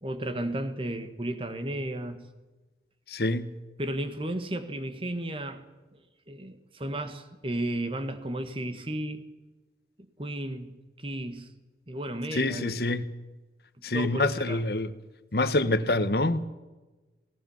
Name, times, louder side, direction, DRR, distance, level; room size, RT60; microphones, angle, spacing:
voice 1, 0.0-2.2 3.8-5.6 5.9-6.0 6.3-9.2 10.0-11.5 11.9-12.8 13.9-14.6, right 1 dB, 30° right, 1.5 m, -34 dB
voice 2, 3.1-3.5 12.3-13.0 13.8-14.9 15.3-16.5, left 2 dB, 65° left, 1.2 m, -26 dB
20.5 x 18.0 x 7.2 m
head